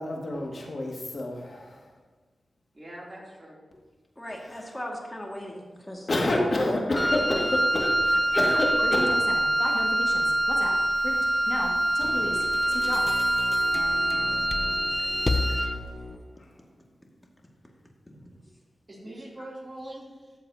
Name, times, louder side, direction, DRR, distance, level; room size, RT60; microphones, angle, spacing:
voice 1, 0.0-1.8 4.4-4.5 6.1-10.7 11.0-11.2 11.5-12.4 12.8-13.0, left 1 dB, 55° left, -1 dB, 2.1 m, -29 dB
voice 2, 2.7-3.6 14.9-15.6 18.9-20.3, right 1 dB, 30° right, -4 dB, 3.0 m, -43 dB
voice 3, 4.2-6.9 18.1-18.3, left 1 dB, 15° left, -1 dB, 2.1 m, -38 dB
Wind instrument woodwind instrument, 6.9-15.8, right 1 dB, ahead, 0.9 m, -25 dB
sound 1, 12.0-16.4, left 2 dB, 35° left, 0.6 m, -33 dB
14.0 x 7.3 x 2.9 m, 1.4 s
cardioid pair, 55°, 0 cm